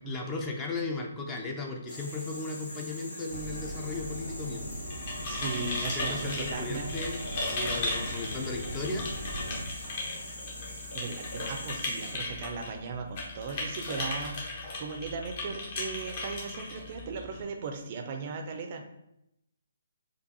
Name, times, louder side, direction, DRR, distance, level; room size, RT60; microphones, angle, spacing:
voice 1, 0.1-4.7 5.9-9.1, left 3 dB, 15° left, 1 dB, 0.5 m, -36 dB
sound 1, 1.9-12.1, left 1 dB, 65° left, 1.5 m, -44 dB
sound 2, 3.3-9.6, equal, 80° left, 1.0 m, -40 dB
sound 3, 4.7-17.4, left 2 dB, 40° left, 1.0 m, -37 dB
voice 2, 5.3-6.9 7.9-8.0 10.9-18.8, right 4 dB, 40° right, 4 dB, 0.4 m, -37 dB
4.4 x 2.5 x 2.7 m, 0.83 s
figure-of-eight pair, 135°, 0 cm